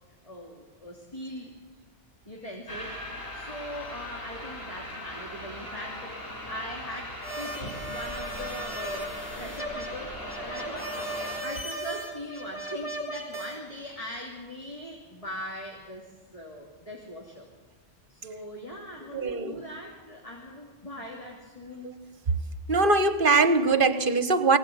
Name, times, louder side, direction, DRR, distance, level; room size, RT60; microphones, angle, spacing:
voice 1, 0.2-1.5 2.3-17.5 18.1-22.0, equal, 30° left, -2 dB, 3.0 m, -41 dB
sound 1, 2.7-11.4, left 1 dB, 55° left, 4.4 m, -39 dB
sound 2, 7.2-13.6, right 1 dB, 10° left, 4.6 m, -37 dB
voice 2, 19.1-19.6 22.7-24.6, right 3 dB, 50° right, 11 dB, 1.3 m, -22 dB
23.5 x 17.0 x 9.3 m, 1.3 s
omnidirectional pair, 1.2 m